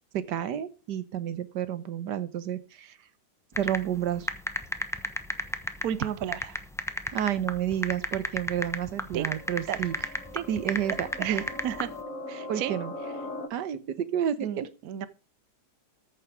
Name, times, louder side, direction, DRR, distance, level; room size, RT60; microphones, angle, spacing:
voice 1, 0.1-3.0 3.6-4.3 7.1-9.9 10.5-11.4 12.5-12.9 13.5-14.7, right 10 dB, 90° right, 1.6 m, -30 dB
sound 1, 3.6-11.9, equal, ahead, 0.7 m, -32 dB
voice 2, 5.8-6.6 9.1-9.3 9.7-9.8 10.3-10.5 11.2-11.9 12.3-12.8 14.4-15.1, right 10 dB, 65° right, 1.2 m, -32 dB
sound 2, 8.4-13.5, left 2 dB, 55° left, 1.7 m, -41 dB
14.0 x 7.1 x 4.8 m
omnidirectional pair, 1.8 m